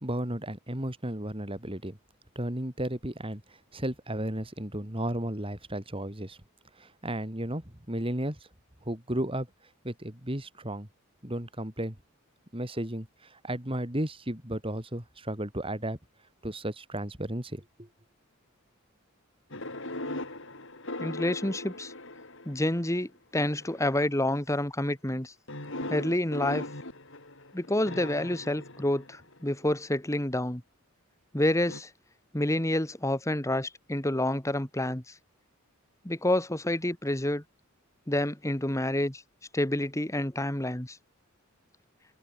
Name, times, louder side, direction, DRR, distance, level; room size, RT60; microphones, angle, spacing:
voice 1, 0.0-2.0 2.3-3.4 3.7-6.4 6.8-8.4 8.8-9.5 9.8-10.9 11.2-12.0 12.5-16.0 16.4-17.9, right 1 dB, 25° right, 3.3 m, -34 dB
sound 1, 19.5-22.9 23.6-24.1 25.5-29.6 31.7-31.8, left 2 dB, 60° left, 5.8 m, -39 dB
voice 2, 21.0-21.9 22.4-25.3 25.9-26.6 27.5-30.6 31.3-31.9 32.3-35.1 36.0-37.4 38.1-39.2 39.5-41.0, left 1 dB, 15° left, 1.6 m, -28 dB
open air
head